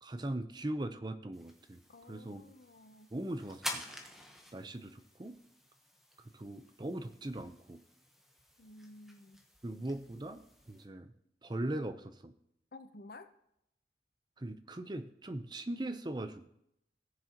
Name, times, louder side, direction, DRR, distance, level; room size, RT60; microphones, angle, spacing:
voice 1, 0.0-1.8 2.1-2.4 3.1-3.8 4.5-5.4 6.3-7.8 9.6-11.1 11.4-12.3 14.4-16.5, right 1 dB, 25° right, 10 dB, 0.6 m, -40 dB
sound 1, 1.3-10.8, left 1 dB, ahead, 1.0 m, -49 dB
voice 2, 1.9-3.1 8.6-9.4 12.7-13.3, left 2 dB, 60° left, 9 dB, 0.7 m, -53 dB
17.5 x 7.0 x 2.9 m, 0.77 s
head